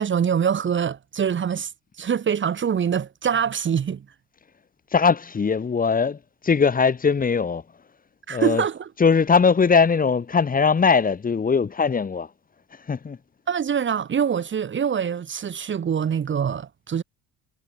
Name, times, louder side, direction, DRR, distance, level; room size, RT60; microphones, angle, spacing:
voice 1, 0.0-1.7 2.0-4.0 8.3-8.9 13.5-17.0, right 7 dB, 30° right, 2.7 m, -24 dB
voice 2, 4.9-7.6 8.3-8.6 9.0-12.3 12.9-13.2, left 5 dB, 20° left, 3.6 m, -20 dB
cardioid pair, 170°, 38 cm